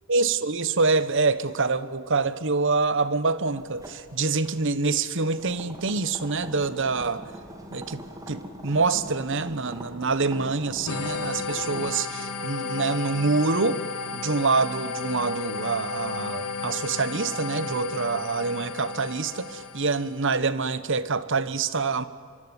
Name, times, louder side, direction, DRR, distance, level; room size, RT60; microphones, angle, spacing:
voice 1, 0.1-7.2 7.7-8.0 8.3-13.8 14.1-22.0, right 4 dB, 55° right, 1.1 m, -26 dB
sound 1, 3.6-11.9, right 1 dB, 15° right, 2.7 m, -42 dB
sound 2, 10.9-20.2, left 4 dB, 85° left, 1.7 m, -33 dB
25.0 x 23.5 x 9.7 m
head